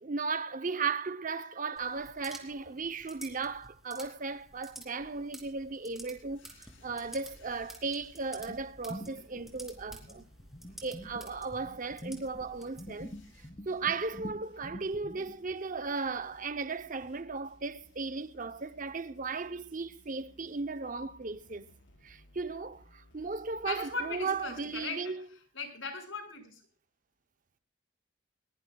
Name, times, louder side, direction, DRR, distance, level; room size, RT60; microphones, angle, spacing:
voice 1, 0.0-10.2 10.8-13.1 13.7-21.7 22.0-25.2, right 4 dB, 40° right, 0.7 m, -36 dB
sound 1, 1.8-13.5, right 1 dB, ahead, 3.0 m, -52 dB
sound 2, 6.5-24.9, left 1 dB, 70° left, 5.0 m, -61 dB
sound 3, 8.4-12.5 12.8-15.5, equal, 30° left, 2.8 m, -46 dB
voice 2, 23.6-25.2 25.5-26.6, left 4 dB, 85° left, 5.6 m, -38 dB
21.5 x 21.0 x 2.3 m
head